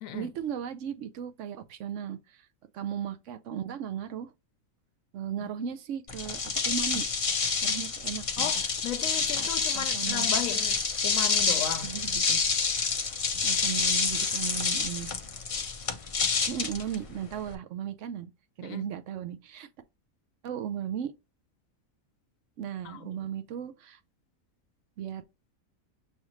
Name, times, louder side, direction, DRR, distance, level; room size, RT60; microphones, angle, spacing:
voice 1, 0.1-2.4 2.7-4.3 5.1-7.0 7.6-8.5 9.4-9.5 9.7-10.3 11.8-12.4 13.4-15.1 16.5-18.3 18.6-19.7 20.4-21.1 22.6-24.0 25.0-25.2, right 9 dB, 70° right, 0.9 m, -36 dB
sound 1, 6.1-17.5, left 5 dB, 45° left, 0.4 m, -28 dB
voice 2, 8.4-11.9 18.6-18.9 22.8-23.3, left 9 dB, 75° left, 1.0 m, -36 dB
6.3 x 2.5 x 3.0 m
omnidirectional pair, 1.5 m